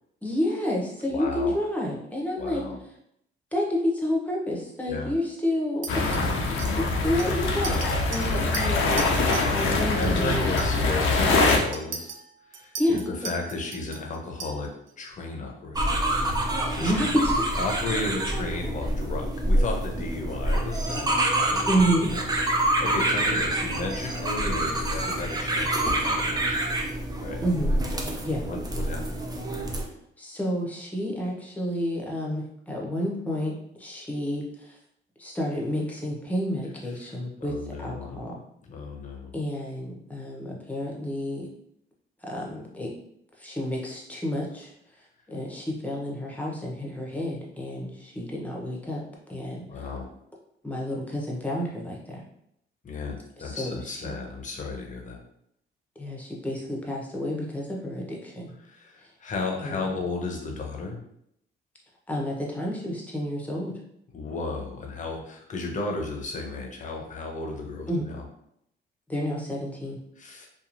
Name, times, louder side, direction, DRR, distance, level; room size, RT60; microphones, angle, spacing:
voice 1, 0.2-2.6 3.5-6.2 7.0-7.8 8.1-8.9 9.5-10.4 12.8-13.0 16.8-17.4 21.7-22.1 27.4-27.7 28.2-28.4 30.2-33.5 33.8-34.8 35.2-38.4 39.3-41.5 42.2-42.9 43.4-44.7 45.3-49.0 49.3-49.8 50.6-52.2 53.4-54.1 56.0-58.5 59.6-59.8 62.1-63.7 67.9-68.1 69.1-70.0, equal, 5° left, -2 dB, 0.8 m, -29 dB
voice 2, 1.1-1.5 2.4-2.8 4.9-5.2 6.2-6.4 9.6-12.1 12.5-14.7 15.0-16.0 16.7-17.0 17.6-21.8 22.1-26.8 27.2-27.5 28.4-29.2 37.4-38.2 38.7-39.3 49.7-50.1 52.8-55.2 58.6-61.0 64.1-68.2 70.2-70.5, left 3 dB, 40° left, 1 dB, 0.7 m, -34 dB
Chink clink, 5.8-9.5 9.8-10.1 10.3-14.9, right 5 dB, 70° right, 0.6 m, -39 dB
sound 1, 5.9-11.6, left 3 dB, 85° left, 0.5 m, -24 dB
sound 2, 15.7-29.8, right 1 dB, 20° right, 0.5 m, -27 dB
2.9 x 2.3 x 2.5 m, 0.74 s
cardioid pair, 90°, 20 cm